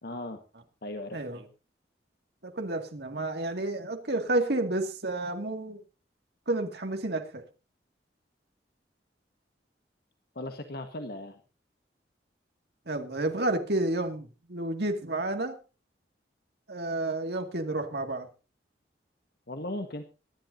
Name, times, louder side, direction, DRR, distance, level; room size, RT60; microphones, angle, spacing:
voice 1, 0.0-0.4 0.8-1.2 10.3-11.4 19.5-20.0, left 1 dB, 60° left, 1.5 m, -37 dB
voice 2, 1.1-1.5 2.4-5.8 6.5-7.4 12.9-15.6 16.7-18.3, right 2 dB, 65° right, 2.3 m, -30 dB
24.0 x 11.5 x 2.7 m
head